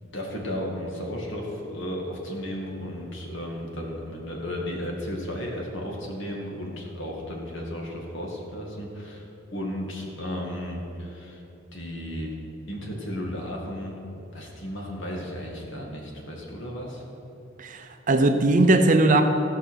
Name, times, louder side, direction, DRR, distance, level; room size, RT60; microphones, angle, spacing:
voice 1, 0.0-11.4 11.7-12.4 12.7-14.0 14.3-17.0, equal, 65° left, -1 dB, 2.1 m, -34 dB
voice 2, 17.6-19.2, right 2 dB, 40° right, 7 dB, 0.7 m, -19 dB
16.0 x 5.5 x 6.3 m, 2.9 s
head